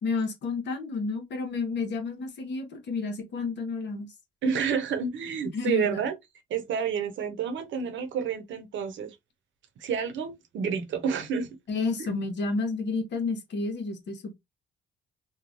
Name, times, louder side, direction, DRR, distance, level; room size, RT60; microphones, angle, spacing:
voice 1, 0.0-4.1 5.5-6.0 11.7-14.3, left 4 dB, 60° left, 1.0 m, -30 dB
voice 2, 4.4-6.1 6.5-9.1 9.8-11.5 12.0-12.1, right 6 dB, 70° right, 0.8 m, -29 dB
3.1 x 2.3 x 2.5 m
cardioid pair, 90°, 20 cm